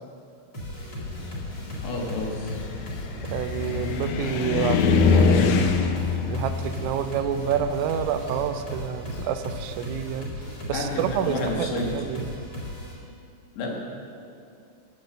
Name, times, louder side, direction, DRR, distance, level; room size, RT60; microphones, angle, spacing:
sound 1, 0.5-12.9, left 1 dB, 45° left, 1.4 m, -36 dB
Car, 1.0-9.3, left 5 dB, 85° left, 2.2 m, -25 dB
voice 1, 1.8-2.5 10.7-11.9 13.6-13.8, left 2 dB, 70° left, -1 dB, 3.3 m, -30 dB
voice 2, 3.3-5.6 6.2-10.3 10.7-12.3, right 8 dB, 80° right, 9 dB, 2.8 m, -28 dB
12.0 x 7.9 x 6.8 m, 2.4 s
omnidirectional pair, 5.5 m